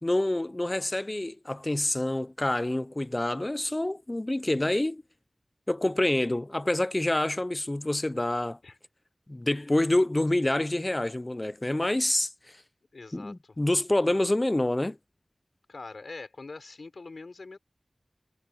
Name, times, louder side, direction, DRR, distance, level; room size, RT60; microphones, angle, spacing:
voice 1, 0.0-5.0 5.7-8.6 9.3-12.3 13.1-15.0, left 1 dB, 30° left, 0.5 m, -27 dB
voice 2, 12.9-13.6 15.7-17.6, left 3 dB, 80° left, 5.2 m, -43 dB
wide cardioid pair, 65°, 0 cm